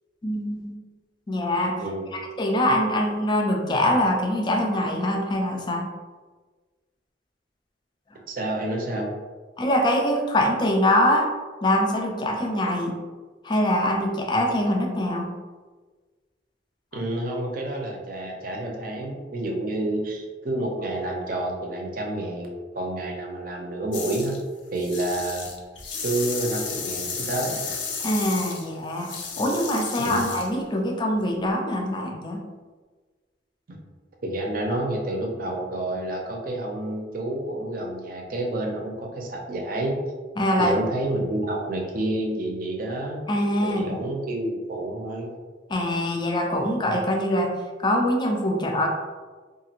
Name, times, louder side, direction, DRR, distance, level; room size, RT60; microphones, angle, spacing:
voice 1, 0.2-0.7 1.3-1.7 2.1-5.9 9.6-11.3 11.6-13.0 13.4-15.3 16.9-17.0 28.0-29.1 29.4-32.4 40.4-40.8 43.3-43.9 45.7-47.5 47.8-48.9, left 1 dB, 25° left, 2 dB, 0.4 m, -23 dB
voice 2, 1.8-2.1 8.3-9.1 16.9-22.5 22.7-24.4 24.7-25.5 26.0-27.5 30.0-30.3 33.7-33.8 34.2-40.0 40.6-43.2 43.6-45.3, right 1 dB, 50° right, 0 dB, 0.5 m, -29 dB
sound 1, 23.9-24.4 24.7-30.5, left 5 dB, 85° left, 0.5 m, -33 dB
2.9 x 2.4 x 2.8 m, 1.4 s
head